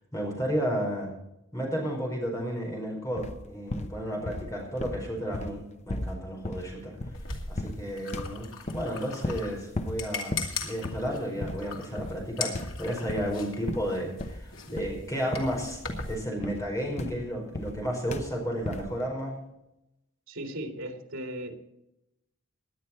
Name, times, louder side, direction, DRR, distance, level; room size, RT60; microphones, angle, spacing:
voice 1, 0.1-1.1 1.5-7.0 7.5-15.8 16.1-19.3, equal, 15° left, 0 dB, 4.8 m, -32 dB
sound 1, 3.2-3.4 3.7-4.5 4.8-7.3 7.6-7.9 8.1-8.9 9.2-9.5 9.7-10.0 10.3-10.6 10.8-11.1 11.4-11.7 12.0-12.3 12.5-13.3 13.7-14.5 14.8-15.0 15.3-15.6 15.9-17.8 18.1-18.4 18.6-18.9, left 1 dB, 35° left, 0.9 m, -36 dB
sound 2, 7.1-16.2, left 5 dB, 85° left, 2.4 m, -40 dB
voice 2, 20.3-21.6, right 1 dB, 80° right, 4 dB, 2.4 m, -37 dB
18.5 x 10.5 x 4.3 m, 0.86 s
head